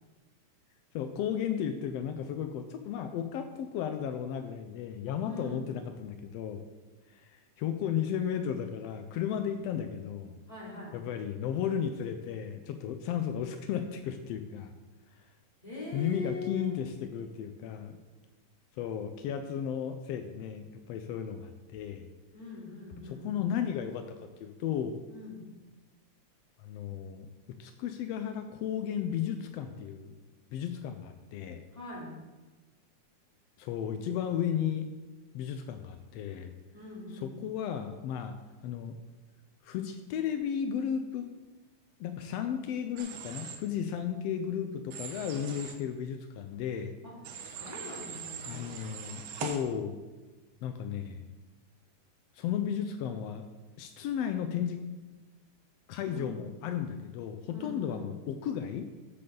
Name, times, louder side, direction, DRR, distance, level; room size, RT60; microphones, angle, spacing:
voice 1, 0.9-6.6 7.1-10.4 10.9-14.7 15.9-18.0 18.8-22.1 23.0-24.9 26.6-27.3 27.6-30.1 30.5-31.6 33.6-34.9 35.3-36.5 37.2-38.4 38.6-39.0 39.6-41.3 42.0-46.9 48.4-50.0 50.6-51.3 52.3-53.4 53.8-54.8 55.9-58.9, left 8 dB, 85° left, 7 dB, 1.4 m, -34 dB
voice 2, 5.2-5.6 10.5-11.0 15.6-16.8 22.3-23.5 25.1-25.5 31.7-32.1 36.7-37.3 47.0-47.2 47.4-48.7 56.0-56.3 57.5-58.0, left 3 dB, 15° left, -6 dB, 3.1 m, -42 dB
Human voice / Train, 43.0-43.6 44.9-45.7 47.2-49.6, right 7 dB, 80° right, 2.4 m, -41 dB
13.5 x 7.9 x 3.8 m, 1.2 s
omnidirectional pair, 3.5 m